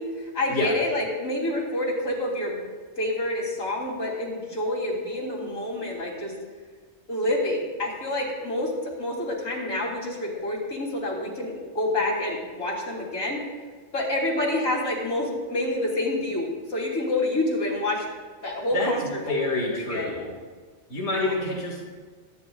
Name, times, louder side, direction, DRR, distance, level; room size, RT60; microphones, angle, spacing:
voice 1, 0.0-2.6 3.0-6.3 7.1-13.4 13.9-18.1 18.4-19.4 19.7-20.2 21.3-21.4, left 1 dB, 80° left, -4 dB, 3.7 m, -28 dB
voice 2, 19.3-20.3 20.9-21.8, left 2 dB, 55° left, -3 dB, 2.2 m, -27 dB
23.0 x 10.5 x 2.4 m, 1.5 s
omnidirectional pair, 1.4 m